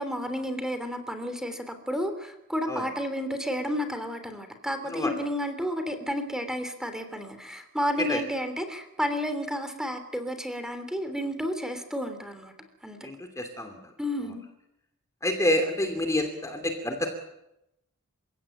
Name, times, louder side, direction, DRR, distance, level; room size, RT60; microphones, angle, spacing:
voice 1, 0.0-12.5 12.8-13.1 14.0-14.4, equal, 5° right, 8 dB, 3.2 m, -31 dB
voice 2, 13.0-13.9 15.2-17.1, left 1 dB, 15° left, 5 dB, 2.7 m, -28 dB
30.0 x 17.0 x 9.0 m, 0.87 s
head